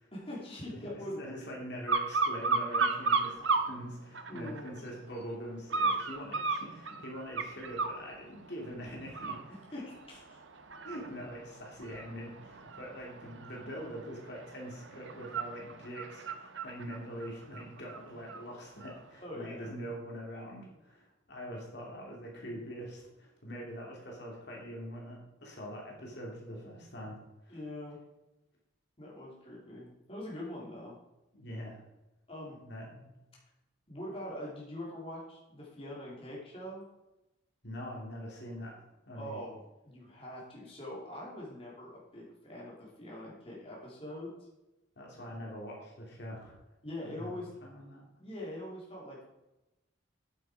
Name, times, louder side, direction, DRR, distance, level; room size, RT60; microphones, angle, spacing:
voice 1, 0.1-1.6 4.3-4.7 9.7-9.8 10.1-10.4 19.2-19.7 27.5-28.0 29.0-31.0 32.3-32.6 33.9-36.8 39.1-39.5 39.8-44.3 46.8-47.5 48.2-49.2, left 1 dB, 30° left, -5 dB, 2.8 m, -43 dB
voice 2, 0.7-9.9 10.8-27.2 27.4-27.6 31.3-31.8 32.6-33.1 37.6-38.7 39.1-39.4 45.0-46.5 47.0-48.0, equal, 55° left, -2 dB, 2.9 m, -44 dB
sound 1, 1.9-3.7 4.1-4.8 5.7-8.0 8.5-8.7 9.1-18.4 18.8-18.9, right 4 dB, 65° right, 0.9 m, -34 dB
9.4 x 8.1 x 4.8 m, 0.96 s
head